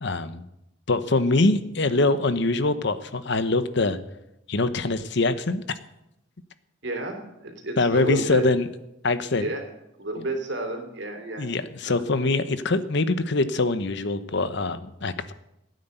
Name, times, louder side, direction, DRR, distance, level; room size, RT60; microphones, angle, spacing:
voice 1, 0.0-0.5 0.9-4.0 4.5-5.6 7.8-8.7 9.0-9.5 11.4-15.3, left 2 dB, 65° left, 12 dB, 1.0 m, -24 dB
voice 2, 6.8-8.4 9.4-9.6 10.0-11.5 11.8-12.1, right 1 dB, 65° right, 4 dB, 3.3 m, -31 dB
16.0 x 9.4 x 8.0 m, 0.86 s
head